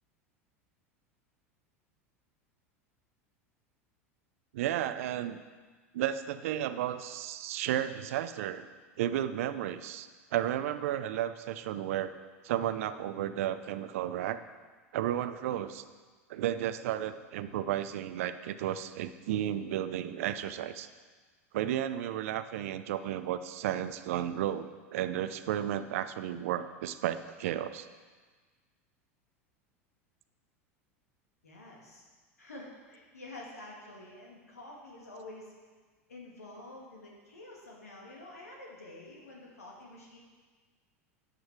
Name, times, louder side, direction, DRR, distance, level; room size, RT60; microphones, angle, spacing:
voice 1, 4.5-5.4 5.9-8.7 9.0-12.1 12.4-14.4 14.9-15.8 16.3-20.9 21.5-27.9, right 11 dB, 70° right, 12 dB, 0.5 m, -33 dB
voice 2, 31.4-32.0 32.4-35.5 36.1-40.2, left 2 dB, 90° left, -3 dB, 2.0 m, -48 dB
9.2 x 8.9 x 4.7 m, 1.4 s
hypercardioid pair, 85°, 8 cm